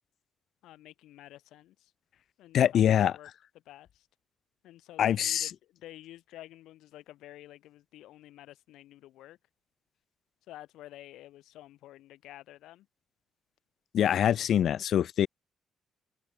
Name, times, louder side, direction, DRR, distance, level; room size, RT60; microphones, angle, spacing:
voice 1, 0.6-1.9 2.4-3.3 3.7-4.1 4.6-9.4 10.5-12.9, left 14 dB, 85° left, 7.6 m, -50 dB
voice 2, 2.5-3.2 5.0-5.5 13.9-15.3, left 10 dB, 65° left, 1.3 m, -24 dB
open air
cardioid pair, 90°, 0 cm